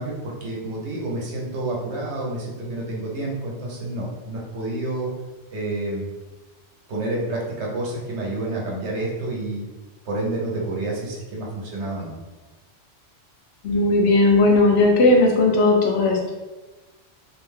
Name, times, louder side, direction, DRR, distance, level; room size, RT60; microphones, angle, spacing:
voice 1, 0.0-5.1 5.5-6.1 6.9-9.7 10.1-12.1, right 2 dB, 75° right, -2 dB, 1.0 m, -29 dB
voice 2, 13.6-16.3, left 2 dB, 70° left, 1 dB, 0.8 m, -17 dB
2.7 x 2.2 x 3.2 m, 1.2 s
omnidirectional pair, 1.2 m